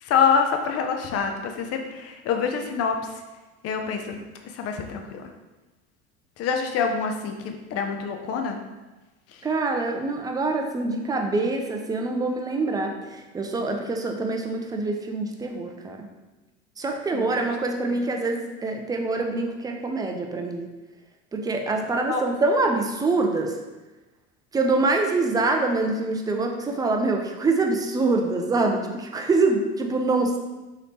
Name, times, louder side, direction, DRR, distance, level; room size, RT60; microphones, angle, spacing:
voice 1, 0.0-3.1 3.6-5.3 6.4-8.6 9.3-9.4 17.1-17.3 22.1-22.2, left 6 dB, 45° left, 4 dB, 0.5 m, -26 dB
voice 2, 9.4-16.1 16.8-20.7 21.3-23.5 24.5-30.4, right 3 dB, 10° right, 3 dB, 0.3 m, -25 dB
3.2 x 2.8 x 3.0 m, 1.1 s
hypercardioid pair, 90°, 34 cm